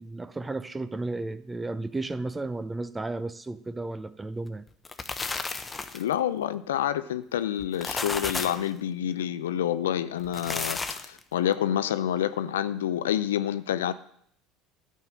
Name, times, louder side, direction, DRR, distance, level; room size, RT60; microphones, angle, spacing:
voice 1, 0.0-4.6, right 2 dB, 15° right, 0.7 m, -33 dB
sound 1, 4.7-6.1 7.6-8.7 10.2-11.2, left 3 dB, 20° left, 0.9 m, -33 dB
voice 2, 5.9-13.9, left 10 dB, 75° left, 0.5 m, -28 dB
12.0 x 5.5 x 7.4 m
hypercardioid pair, 70°, 0 cm